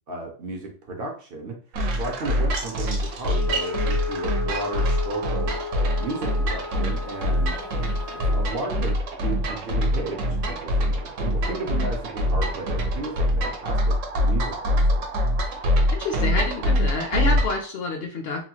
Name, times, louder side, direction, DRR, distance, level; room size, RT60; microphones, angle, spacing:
voice 1, 0.1-1.6 2.0-5.6 6.0-7.5 8.2-14.0 14.2-15.0 17.2-17.4, right 2 dB, 60° right, 0 dB, 0.8 m, -34 dB
sound 1, 1.7-17.6, equal, 85° right, 1.0 m, -24 dB
Wind instrument woodwind instrument, 3.2-8.5, left 5 dB, 90° left, 1.3 m, -34 dB
voice 2, 15.9-18.4, left 3 dB, 65° left, 3 dB, 0.7 m, -28 dB
3.0 x 2.2 x 2.7 m, 0.40 s
omnidirectional pair, 1.3 m